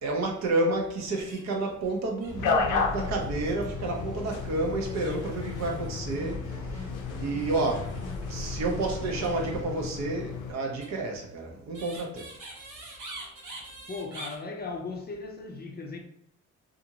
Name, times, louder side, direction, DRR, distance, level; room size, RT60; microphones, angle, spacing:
voice 1, 0.0-6.4 7.2-7.9 8.3-12.3, right 2 dB, 60° right, 0.7 m, -30 dB
sound 1, 1.0-1.6 1.9-2.0 2.2-3.6 4.1-4.4 5.0-5.8 9.1-9.3 10.8-14.3, right 2 dB, 80° right, 1.2 m, -44 dB
sound 2, 2.3-10.5, left 5 dB, 80° left, 0.5 m, -33 dB
sound 3, 2.3-9.6, equal, 10° right, 1.0 m, -41 dB
voice 2, 13.9-16.0, left 3 dB, 30° left, 0.5 m, -37 dB
2.7 x 2.5 x 2.7 m
cardioid pair, 90°, 30 cm